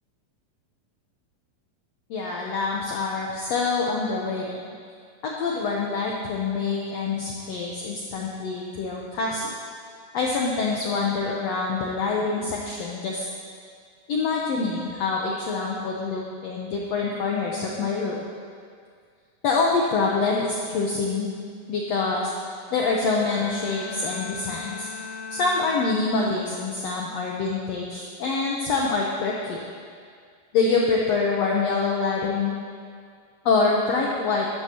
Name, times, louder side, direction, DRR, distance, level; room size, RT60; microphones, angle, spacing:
voice 1, 2.1-4.6 5.2-9.5 10.1-13.3 14.1-18.2 19.4-21.4 21.7-22.3 22.7-24.9 25.3-29.6 30.5-32.5 33.4-34.5, left 4 dB, 80° left, -2 dB, 1.5 m, -25 dB
Bowed string instrument, 23.0-26.6 27.0-27.4, left 5 dB, 55° left, 2.0 m, -39 dB
13.5 x 11.5 x 2.9 m, 2.1 s
omnidirectional pair, 4.1 m